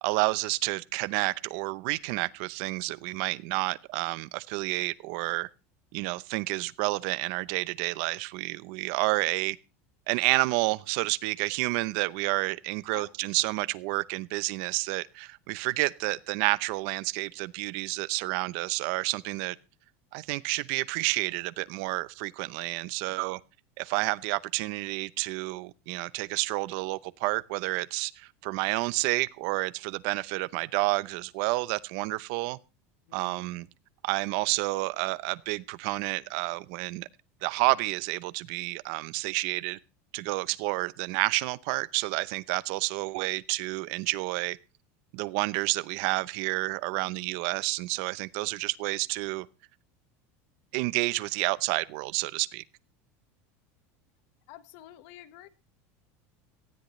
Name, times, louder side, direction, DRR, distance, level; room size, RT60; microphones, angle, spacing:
voice 1, 0.0-5.5 5.9-9.6 10.1-19.6 20.1-23.4 23.8-32.6 33.1-33.7 34.0-37.1 37.4-39.8 40.1-44.6 45.1-49.5 50.7-52.6, right 22 dB, 60° right, 0.7 m, -30 dB
voice 2, 33.1-33.6 54.5-55.5, left 13 dB, 60° left, 1.4 m, -49 dB
18.5 x 13.5 x 3.2 m
supercardioid pair, 165°, 7 cm